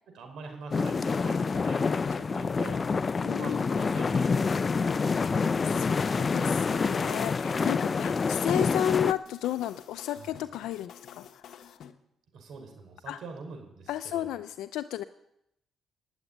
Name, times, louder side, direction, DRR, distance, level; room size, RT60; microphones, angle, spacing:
voice 1, 0.1-2.8 3.3-5.3 6.1-6.9 10.1-10.4 12.3-14.3, right 4 dB, 70° right, 5 dB, 5.0 m, -45 dB
sound 1, 0.7-9.1, left 5 dB, 35° left, 0.5 m, -27 dB
voice 2, 3.2-3.6 5.6-11.8 13.1-13.2 13.9-15.0, left 11 dB, 90° left, 11 dB, 0.5 m, -33 dB
sound 2, 6.3-11.9, left 8 dB, 70° left, 1.1 m, -50 dB
17.5 x 8.2 x 10.0 m, 0.80 s
cardioid pair, 90°, 0 cm